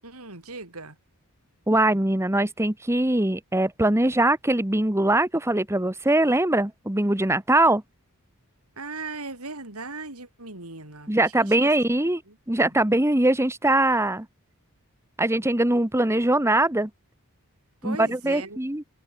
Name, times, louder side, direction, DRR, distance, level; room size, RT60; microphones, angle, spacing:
voice 1, 0.0-1.0 8.8-12.0 12.3-12.4 17.8-18.6, right 3 dB, 80° right, 6.4 m, -38 dB
voice 2, 1.7-7.8 11.1-12.2 12.5-14.3 15.2-16.9 17.8-18.8, right 1 dB, 10° right, 1.3 m, -22 dB
open air
head